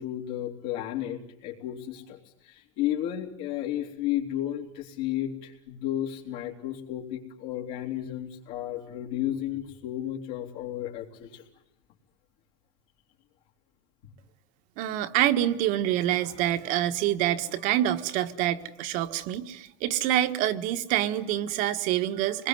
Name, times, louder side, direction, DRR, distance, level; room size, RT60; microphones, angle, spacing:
voice 1, 0.0-11.4, left 12 dB, 70° left, -2 dB, 3.7 m, -33 dB
voice 2, 14.8-22.5, right 12 dB, 60° right, 9 dB, 1.6 m, -26 dB
26.5 x 21.0 x 9.6 m, 0.77 s
supercardioid pair, 140°, 16 cm